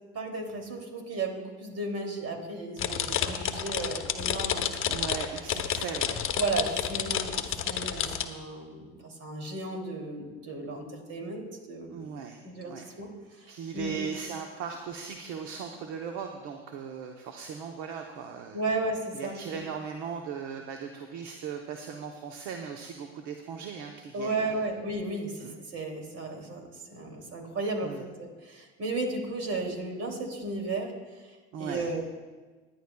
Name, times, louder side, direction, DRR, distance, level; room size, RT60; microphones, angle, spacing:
voice 1, 0.1-5.0 6.4-12.1 12.4-14.0 18.5-19.4 24.1-30.9 31.3-32.0, right 2 dB, 50° right, 2 dB, 2.7 m, -34 dB
sound 1, 2.8-8.2, left 9 dB, 40° left, 0.9 m, -30 dB
voice 2, 4.9-6.2 11.9-12.8 13.5-18.6 19.1-24.6 25.4-25.5 27.8-28.0 31.5-31.9, right 6 dB, 70° right, 3 dB, 0.9 m, -38 dB
19.0 x 10.5 x 2.3 m, 1.3 s
supercardioid pair, 90°, 31 cm